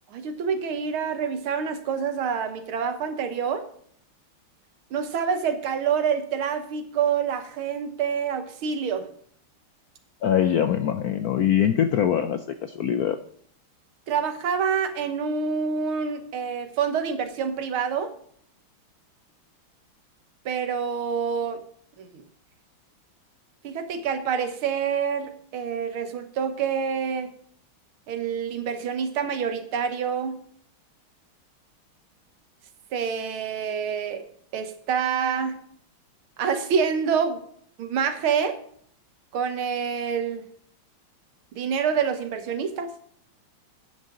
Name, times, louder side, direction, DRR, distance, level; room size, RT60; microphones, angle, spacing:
voice 1, 0.1-3.6 4.9-9.1 14.1-18.1 20.5-21.6 22.0-22.2 23.6-27.3 28.1-30.4 32.9-34.2 34.5-35.6 36.4-37.4 37.8-38.6 39.3-40.4 41.6-42.9, right 6 dB, 80° right, 8 dB, 2.0 m, -27 dB
voice 2, 10.2-13.2, left 9 dB, 75° left, 9 dB, 0.8 m, -23 dB
11.5 x 9.3 x 3.8 m, 0.62 s
omnidirectional pair, 2.3 m